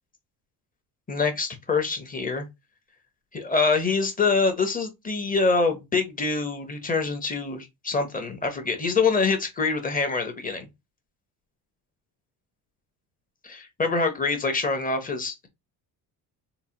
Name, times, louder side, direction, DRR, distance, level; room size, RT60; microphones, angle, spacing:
voice 1, 1.1-2.5 3.3-10.7 13.4-15.5, left 4 dB, 20° left, 0.7 m, -25 dB
3.8 x 2.1 x 2.7 m
cardioid pair, 125°, 40 cm